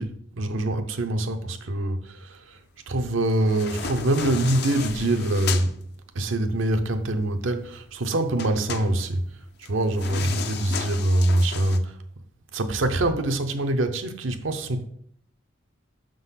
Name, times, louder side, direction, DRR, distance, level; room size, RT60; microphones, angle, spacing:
voice 1, 0.0-2.6 2.9-5.8 6.1-9.3 9.7-12.0 12.5-14.9, right 1 dB, 75° right, 0.7 m, -24 dB
sound 1, 3.3-5.7 8.4-11.8, left 6 dB, 55° left, 0.6 m, -34 dB
6.2 x 3.8 x 5.7 m
head